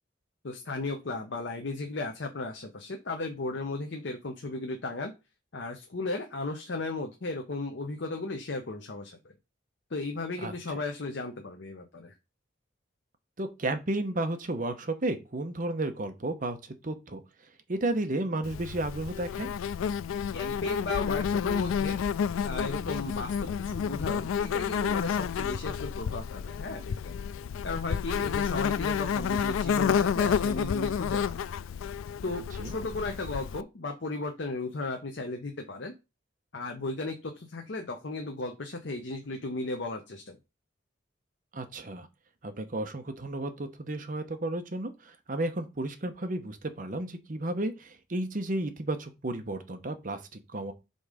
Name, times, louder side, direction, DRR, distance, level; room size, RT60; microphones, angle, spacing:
voice 1, 0.4-5.1 5.5-9.3 9.9-12.1 20.3-22.0 22.4-27.2 27.6-31.4 32.2-36.0 36.5-40.4, left 2 dB, 60° left, 4 dB, 0.7 m, -35 dB
voice 2, 13.4-16.6 16.8-17.2 17.7-19.5 32.6-32.7 41.5-42.1 42.4-50.7, right 2 dB, 40° right, 7 dB, 0.8 m, -33 dB
Insect, 18.4-33.6, left 7 dB, 85° left, 0.3 m, -30 dB
5.3 x 3.8 x 4.9 m, 0.27 s
head